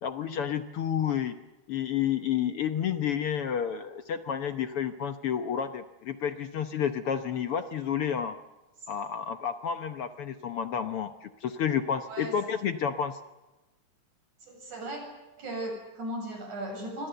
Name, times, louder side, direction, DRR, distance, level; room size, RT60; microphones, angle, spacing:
voice 1, 0.0-1.3 1.7-8.4 8.9-13.2, left 8 dB, 60° left, 9 dB, 1.6 m, -30 dB
voice 2, 14.4-15.0 15.4-17.1, right 1 dB, 85° right, 3 dB, 9.1 m, -37 dB
28.0 x 24.5 x 7.9 m, 1.1 s
omnidirectional pair, 3.4 m